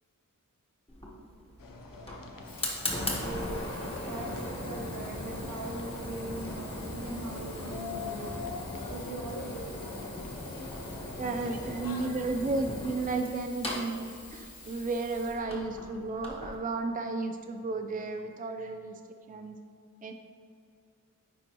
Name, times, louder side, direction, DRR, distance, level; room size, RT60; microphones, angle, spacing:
Fire, 0.9-16.6, left 1 dB, 15° left, 1.4 m, -39 dB
sound 1, 1.6-12.1, left 4 dB, 85° left, 0.7 m, -44 dB
Sink (filling or washing), 2.3-16.1 16.8-16.9, left 2 dB, 55° left, 1.7 m, -50 dB
voice 1, 3.1-8.3 8.9-10.0, right 2 dB, 80° right, -3 dB, 1.5 m, -41 dB
voice 2, 11.2-19.0 19.3-19.5 20.0-20.1, right 3 dB, 25° right, 5 dB, 0.4 m, -33 dB
9.4 x 4.5 x 3.0 m, 2.3 s
wide cardioid pair, 75°, 33 cm